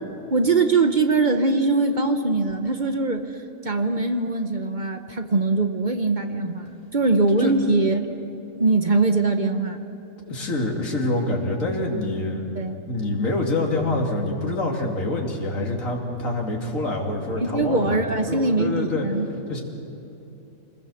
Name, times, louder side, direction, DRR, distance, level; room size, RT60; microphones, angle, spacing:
voice 1, 0.3-3.3 3.6-8.1 8.6-9.8 12.5-12.8 17.3-19.3, right 3 dB, 40° right, 7 dB, 1.0 m, -22 dB
voice 2, 10.3-12.5 12.9-19.1 19.5-19.6, left 2 dB, 75° left, 0 dB, 3.0 m, -26 dB
26.5 x 20.5 x 7.1 m, 2.9 s
omnidirectional pair, 1.4 m